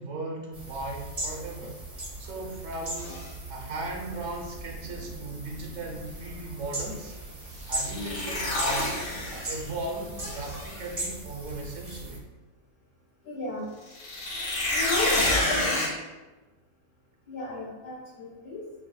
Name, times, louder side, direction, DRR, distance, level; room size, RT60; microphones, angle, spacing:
voice 1, 0.0-3.2 3.5-7.1 7.7-8.9 9.3-12.2 15.2-15.7, right 2 dB, 65° right, 0 dB, 1.0 m, -37 dB
sound 1, 0.5-12.2, right 1 dB, 30° right, 0.9 m, -38 dB
sound 2, 3.0-3.3 7.7-9.7 10.2-10.8 13.9-15.9, left 2 dB, 50° left, 0.8 m, -28 dB
voice 2, 7.9-8.4 13.2-13.7 14.7-15.8 17.3-18.6, left 2 dB, 90° left, -6 dB, 1.9 m, -34 dB
5.5 x 2.6 x 2.2 m, 1.2 s
omnidirectional pair, 1.5 m